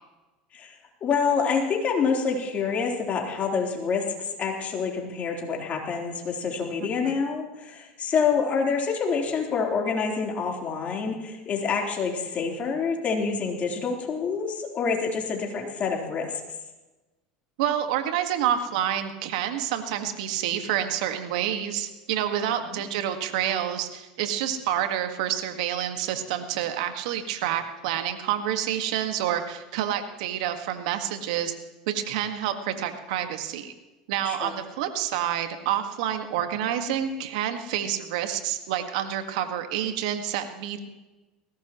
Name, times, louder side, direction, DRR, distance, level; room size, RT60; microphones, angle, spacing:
voice 1, 1.0-4.0 4.4-16.3 22.6-22.8 34.2-34.5, left 5 dB, 40° left, 0 dB, 3.8 m, -27 dB
voice 2, 17.6-31.5 31.9-33.7 34.1-40.8, right 10 dB, 75° right, 7 dB, 1.7 m, -28 dB
20.0 x 17.0 x 3.1 m, 1.1 s
hypercardioid pair, 85°, 4 cm